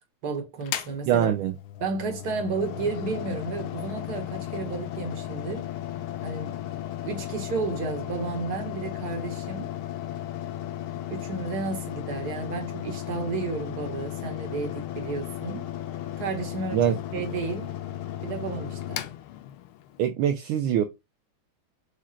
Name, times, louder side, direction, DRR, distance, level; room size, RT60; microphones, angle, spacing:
voice 1, 0.2-1.3 1.8-5.6 6.2-6.5 7.0-9.7 11.1-15.6 16.2-16.8 17.1-17.7 18.2-19.0, right 4 dB, 50° right, 1.7 m, -32 dB
Mechanical fan, 0.6-20.0, left 12 dB, 80° left, 1.5 m, -35 dB
voice 2, 1.1-1.5 16.7-16.9 20.0-20.8, right 10 dB, 75° right, 1.3 m, -23 dB
5.0 x 2.3 x 4.2 m
omnidirectional pair, 2.3 m